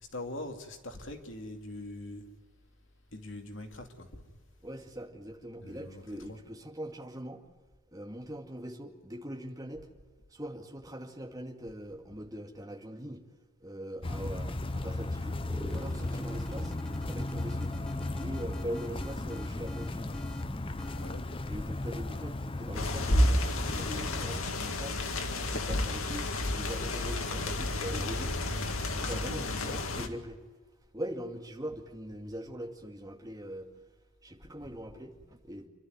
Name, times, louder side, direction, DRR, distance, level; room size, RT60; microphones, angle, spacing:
voice 1, 0.1-2.2 3.1-4.2 5.6-6.4 20.8-21.6 29.0-30.1, left 1 dB, 65° left, 2.6 m, -43 dB
voice 2, 4.6-7.4 7.9-9.9 10.3-13.2 13.6-15.4 15.7-16.7 17.0-17.7 18.2-20.2 21.5-25.0 25.4-28.4 28.9-30.4 30.9-33.7 34.2-35.7, equal, 15° right, 2.3 m, -42 dB
sound 1, 14.0-24.4, left 2 dB, 25° left, 0.7 m, -36 dB
sound 2, 15.4-21.2, equal, 5° left, 1.0 m, -44 dB
sound 3, 22.7-30.1, left 1 dB, 90° left, 1.9 m, -31 dB
28.0 x 12.0 x 9.4 m
head